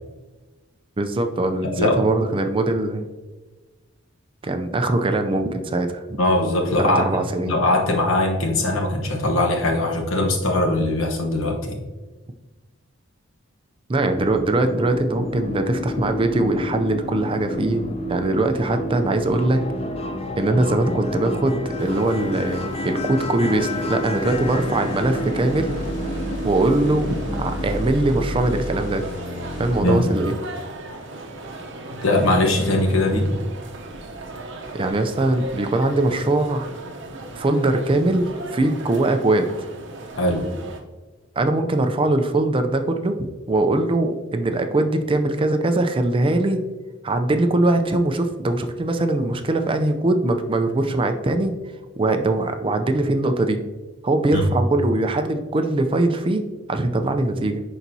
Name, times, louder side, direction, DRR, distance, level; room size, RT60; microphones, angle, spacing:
voice 1, 1.0-3.1 4.4-6.2 6.8-7.5 13.9-17.8 18.1-19.6 20.4-25.7 26.4-29.0 29.6-30.3 34.7-36.7 37.3-39.5 41.4-46.6 47.0-51.5 52.0-53.6 54.0-57.6, right 2 dB, 25° right, 7 dB, 0.4 m, -21 dB
voice 2, 6.2-11.8 29.8-30.1 32.0-33.3 40.2-40.5 54.3-54.4, left 1 dB, 80° left, 2 dB, 1.1 m, -21 dB
sound 1, 14.2-27.9, left 1 dB, 30° left, 0.5 m, -30 dB
sound 2, 21.8-40.8, right 2 dB, 65° right, 0.8 m, -37 dB
sound 3, 24.3-30.0, equal, 55° left, 2.2 m, -32 dB
10.5 x 4.1 x 2.7 m, 1.2 s
head